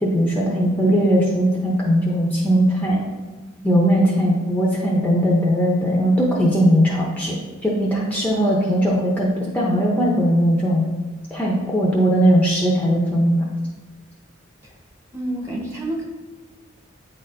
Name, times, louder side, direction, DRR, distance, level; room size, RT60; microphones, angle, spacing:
voice 1, 0.0-3.1 3.6-7.4 7.6-10.9 11.3-13.4, equal, 10° left, -4 dB, 0.6 m, -19 dB
voice 2, 15.1-16.0, right 1 dB, 15° right, -2 dB, 1.0 m, -29 dB
8.8 x 4.2 x 2.6 m, 1.3 s
head